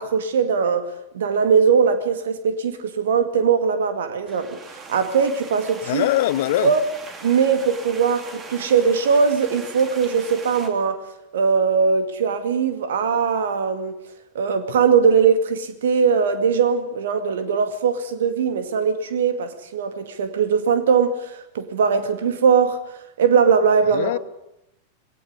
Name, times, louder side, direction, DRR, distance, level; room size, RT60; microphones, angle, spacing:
voice 1, 0.0-6.1 6.6-6.8 7.2-11.0 11.3-13.9 14.3-22.8 23.2-24.1, right 6 dB, 60° right, 2.2 m, -20 dB
sound 1, 4.3-10.7, right 3 dB, 25° right, 3.1 m, -40 dB
voice 2, 5.8-6.7 23.9-24.2, left 15 dB, 55° left, 0.9 m, -22 dB
21.0 x 17.5 x 9.7 m
figure-of-eight pair, 90°, 0 cm